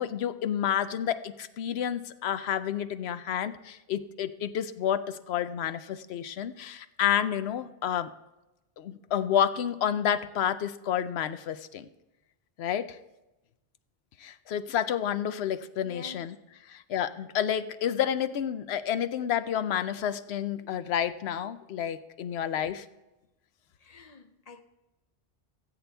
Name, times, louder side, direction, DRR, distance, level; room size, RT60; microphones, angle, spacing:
voice 1, 0.0-8.1 8.8-11.9 12.6-13.0 14.2-16.3 16.7-22.9, left 9 dB, 90° left, 0.9 m, -30 dB
voice 2, 15.8-16.4 23.8-24.6, left 3 dB, 40° left, 0.8 m, -48 dB
17.0 x 8.1 x 3.5 m
omnidirectional pair, 1.0 m